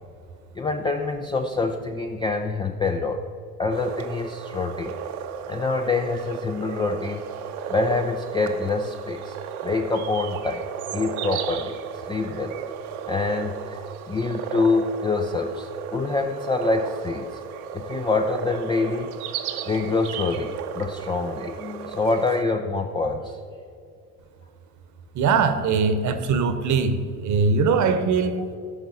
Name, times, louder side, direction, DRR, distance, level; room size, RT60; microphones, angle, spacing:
voice 1, 0.5-3.2 3.6-4.9 5.5-7.2 7.7-9.4 9.6-10.7 10.9-11.8 12.1-12.5 13.1-13.8 14.1-17.3 17.7-19.1 19.7-23.7 28.4-28.5, left 3 dB, 10° left, 4 dB, 0.4 m, -26 dB
sound 1, 3.7-22.4, right 7 dB, 65° right, 1.0 m, -34 dB
voice 2, 25.1-28.4, right 5 dB, 35° right, 9 dB, 1.0 m, -21 dB
18.0 x 6.1 x 4.0 m, 2.4 s
figure-of-eight pair, 65°, 47 cm